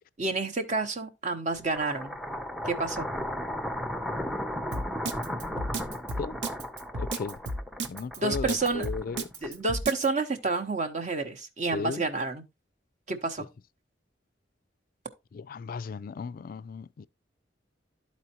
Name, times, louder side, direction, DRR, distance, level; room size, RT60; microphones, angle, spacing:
voice 1, 0.2-2.1 2.7-3.1 8.2-8.9 9.4-12.4 13.1-13.5, right 3 dB, 40° right, 0.8 m, -29 dB
sound 1, 1.6-9.8, left 1 dB, ahead, 0.5 m, -35 dB
Drum kit, 4.7-10.1, right 2 dB, 65° right, 0.8 m, -33 dB
voice 2, 7.0-7.4 7.9-9.3 11.7-12.0 15.3-17.1, left 5 dB, 50° left, 0.3 m, -35 dB
12.0 x 4.3 x 2.8 m
head